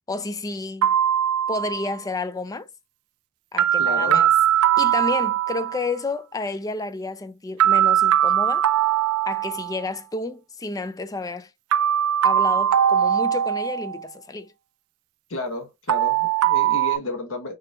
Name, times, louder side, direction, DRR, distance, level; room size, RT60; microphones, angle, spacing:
voice 1, 0.1-0.9 1.5-2.7 3.5-4.3 4.8-8.7 9.3-11.5 12.2-14.5, left 3 dB, 15° left, 0.3 m, -30 dB
sound 1, 0.8-2.0 3.6-5.9 7.6-9.9 11.7-14.1 15.9-17.0, right 10 dB, 80° right, 0.3 m, -20 dB
voice 2, 3.8-4.2 15.3-17.5, left 2 dB, 65° left, 1.1 m, -31 dB
4.2 x 3.1 x 2.3 m
head